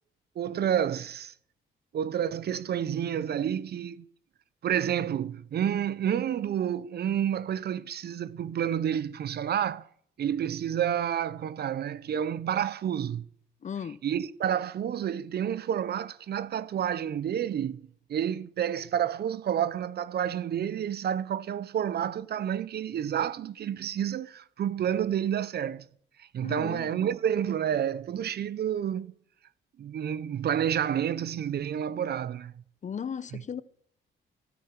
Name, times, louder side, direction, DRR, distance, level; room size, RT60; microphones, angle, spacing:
voice 1, 0.4-1.3 1.9-4.1 4.6-9.9 10.2-13.2 14.0-25.8 26.2-29.1 29.8-32.5 33.3-33.4, right 9 dB, 55° right, 0.6 m, -29 dB
voice 2, 13.6-14.0 26.4-26.9 32.8-33.6, left 7 dB, 40° left, 0.6 m, -36 dB
16.5 x 9.6 x 4.5 m
cardioid pair, 90°, 20 cm